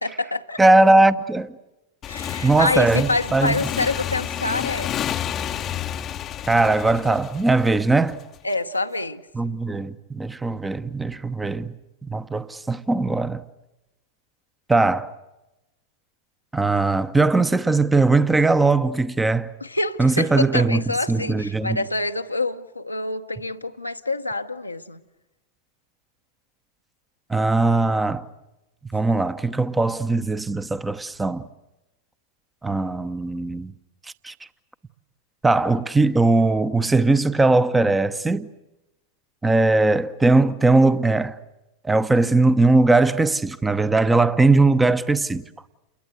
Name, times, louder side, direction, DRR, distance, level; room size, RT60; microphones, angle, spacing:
voice 1, 0.0-0.6 2.1-4.9 8.4-9.2 19.6-25.0, left 2 dB, 85° left, 1.0 m, -26 dB
voice 2, 0.6-1.5 2.4-3.7 6.5-8.2 9.3-11.7 12.0-13.4 14.7-15.1 16.5-19.5 20.0-20.8 21.1-21.8 27.3-28.3 28.9-31.5 32.6-33.7 34.2-34.3 35.4-38.5 39.4-41.4 41.8-45.4, right 3 dB, 10° right, 1.0 m, -19 dB
Motorcycle / Engine, 2.0-8.4, left 10 dB, 30° left, 0.8 m, -30 dB
29.5 x 22.0 x 7.9 m
figure-of-eight pair, 90°, 0 cm